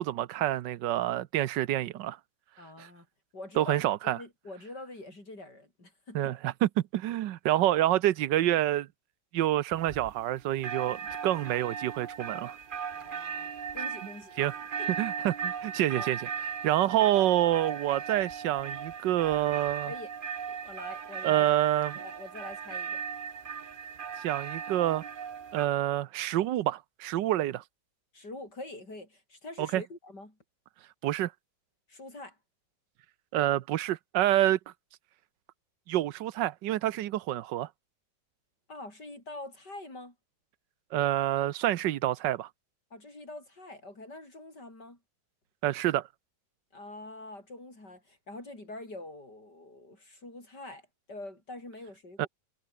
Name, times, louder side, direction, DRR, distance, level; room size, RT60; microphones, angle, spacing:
voice 1, 0.0-2.2 2.8-2.9 3.6-4.2 6.1-8.9 9.3-12.6 14.4-14.5 15.0-16.2 16.6-19.9 21.2-22.0 24.2-25.0 25.5-27.6 29.6-29.8 31.0-31.3 33.3-34.6 35.9-37.7 40.9-42.5 45.6-46.1 52.2-52.3, right 13 dB, 80° right, 1.4 m, -27 dB
voice 2, 2.6-3.1 3.3-6.3 11.3-11.5 12.9-14.5 14.8-14.9 16.0-16.1 16.8-17.0 19.9-20.1 20.5-21.5 22.0-23.0 28.1-30.4 31.9-32.4 38.7-40.2 42.9-45.0 46.7-52.3, left 2 dB, 70° left, 8.6 m, -45 dB
sound 1, 9.7-10.3 10.6-25.7, right 7 dB, 45° right, 0.7 m, -38 dB
omnidirectional pair, 1.9 m